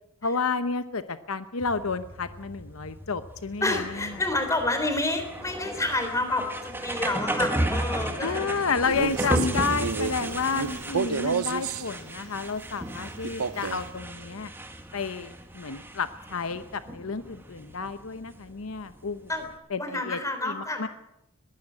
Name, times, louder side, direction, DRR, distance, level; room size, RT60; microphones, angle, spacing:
voice 1, 0.2-3.8 8.2-14.5 14.9-19.3 19.7-20.9, left 4 dB, 70° left, 11 dB, 0.9 m, -31 dB
sound 1, 1.6-19.6, right 1 dB, 10° right, 1.9 m, -34 dB
voice 2, 3.6-8.5 19.3-19.5 19.8-20.9, left 2 dB, 15° left, 6 dB, 3.6 m, -29 dB
Male speech man speaking, 8.8-11.9 13.2-13.9, right 5 dB, 80° right, 0.7 m, -30 dB
21.5 x 15.5 x 8.7 m, 0.86 s
head